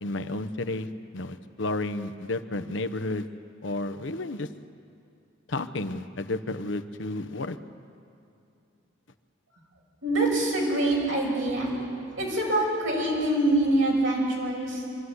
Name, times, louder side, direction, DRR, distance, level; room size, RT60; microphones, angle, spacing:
voice 1, 0.0-3.3 3.6-4.5 5.5-7.6, left 2 dB, 70° left, 11 dB, 0.9 m, -32 dB
voice 2, 10.0-14.9, right 1 dB, 75° right, -2 dB, 6.0 m, -25 dB
24.0 x 13.0 x 9.6 m, 2.6 s
head